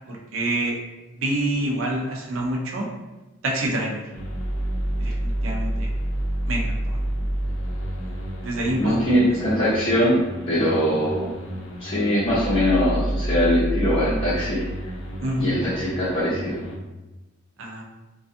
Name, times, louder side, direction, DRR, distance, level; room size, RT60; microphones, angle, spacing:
voice 1, 0.1-0.8 1.2-2.9 3.4-4.0 5.0-5.9 6.5-7.0 8.4-9.0 15.2-15.5 17.6-17.8, right 1 dB, 80° right, -1 dB, 0.5 m, -27 dB
sound 1, 4.1-16.8, right 1 dB, 85° left, 0.5 m, -29 dB
voice 2, 8.7-10.2 10.5-11.3 11.8-14.6 15.4-16.5, equal, 30° left, -11 dB, 0.6 m, -22 dB
2.4 x 2.3 x 2.5 m, 1.1 s
head